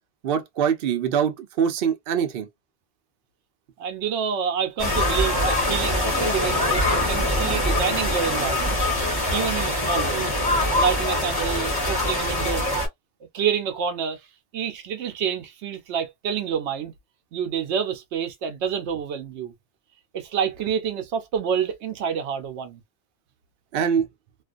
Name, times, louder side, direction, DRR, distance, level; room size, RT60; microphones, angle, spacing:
voice 1, 0.2-2.5 23.7-24.1, right 8 dB, 65° right, 0.7 m, -23 dB
voice 2, 3.8-8.8 9.3-10.3 10.8-12.7 13.3-14.3 14.5-16.9 17.3-19.5 20.1-22.8, right 7 dB, 90° right, 0.9 m, -28 dB
sound 1, 4.8-12.9, left 1 dB, 20° left, 0.9 m, -23 dB
2.4 x 2.4 x 2.4 m
omnidirectional pair, 1.1 m